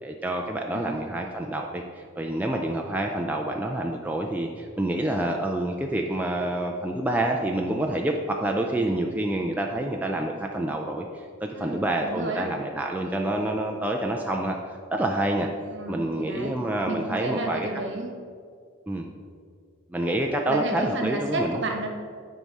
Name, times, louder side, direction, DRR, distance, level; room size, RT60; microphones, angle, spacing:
voice 1, 0.0-14.6 14.9-15.5 15.9-17.7 18.9-19.1 19.9-21.6, right 1 dB, 5° right, 1 dB, 0.3 m, -27 dB
voice 2, 0.7-1.1 11.5-12.5 15.7-16.6 16.8-18.1 20.5-21.9, right 2 dB, 55° right, 2 dB, 1.1 m, -32 dB
10.5 x 4.8 x 4.1 m, 2.2 s
head